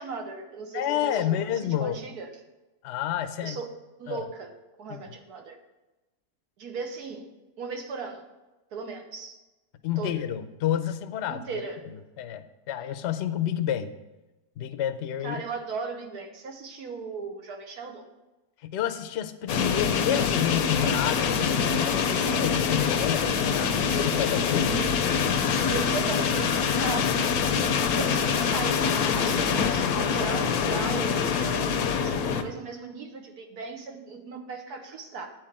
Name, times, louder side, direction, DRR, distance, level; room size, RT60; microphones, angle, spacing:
voice 1, 0.0-1.5 1.8-2.3 3.4-3.7 4.0-4.5 4.8-5.6 6.6-7.2 7.6-8.2 8.7-9.4 10.0-10.1 11.3-11.8 15.2-18.1 25.7-27.5 28.0-28.8 29.1-35.3, right 4 dB, 85° right, 4 dB, 1.6 m, -37 dB
voice 2, 0.7-2.0 2.8-3.6 4.1-4.2 4.9-5.0 9.8-11.4 11.8-13.9 14.6-15.4 18.6-24.8, left 10 dB, 65° left, 9 dB, 0.7 m, -30 dB
sound 1, 19.5-32.4, left 6 dB, 90° left, 1.2 m, -25 dB
8.9 x 4.6 x 7.4 m, 1.1 s
omnidirectional pair, 1.6 m